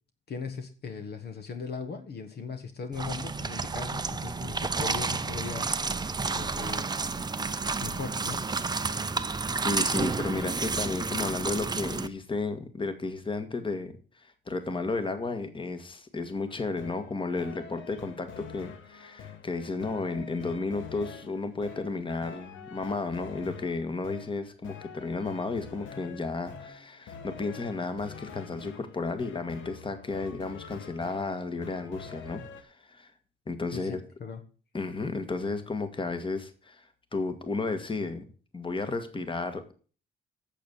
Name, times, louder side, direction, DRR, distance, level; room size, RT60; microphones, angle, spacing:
voice 1, 0.3-5.7 6.3-6.9 7.8-8.4 33.7-34.4, left 5 dB, 55° left, 7 dB, 1.5 m, -38 dB
sound 1, 2.9-12.1, right 4 dB, 20° right, 0.7 m, -31 dB
voice 2, 9.6-33.1 33.5-34.0 34.7-38.2 38.5-39.7, left 3 dB, 25° left, 9 dB, 1.7 m, -33 dB
sound 2, 16.5-32.6, left 6 dB, 80° left, 1.3 m, -46 dB
8.4 x 7.0 x 8.0 m, 0.39 s
cardioid pair, 90°, 20 cm